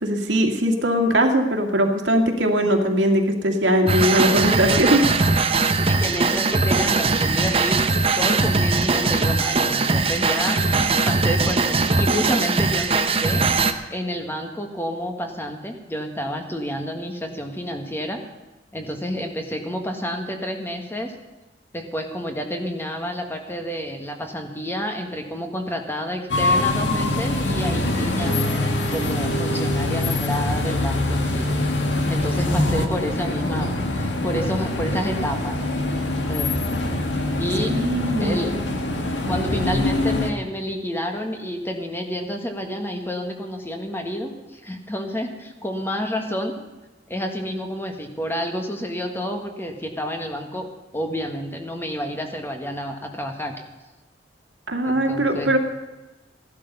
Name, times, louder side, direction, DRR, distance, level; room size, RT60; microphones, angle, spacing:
voice 1, 0.0-5.0 37.7-38.5 54.7-55.6, equal, 90° right, 3 dB, 2.2 m, -20 dB
sound 1, 3.9-13.7, right 3 dB, 35° right, 0.9 m, -20 dB
voice 2, 5.7-7.8 8.2-13.4 13.9-18.2 18.7-21.1 21.7-28.5 28.9-31.5 32.1-35.6 35.8-36.0 36.3-36.5 37.4-37.8 38.2-38.6 39.2-46.6 47.1-50.7 50.9-53.5 54.9-55.5, equal, 15° left, 3 dB, 1.7 m, -29 dB
sound 2, 26.3-40.3, left 2 dB, 80° left, 1.9 m, -24 dB
15.5 x 11.5 x 5.5 m, 1.1 s
head